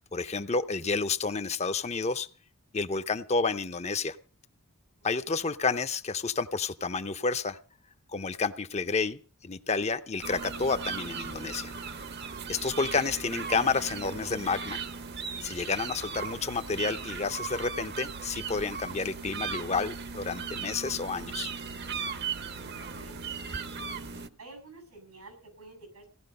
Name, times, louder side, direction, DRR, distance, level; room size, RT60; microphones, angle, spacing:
voice 1, 0.1-2.3 2.7-4.2 5.0-7.6 8.1-11.7 12.5-14.8 15.4-21.5, left 4 dB, 30° left, 10 dB, 0.7 m, -30 dB
sound 1, 10.2-24.3, right 5 dB, 50° right, 1.0 m, -37 dB
voice 2, 22.9-23.6 24.4-26.1, right 3 dB, 90° right, 6 dB, 7.5 m, -51 dB
17.0 x 12.0 x 5.4 m, 0.39 s
head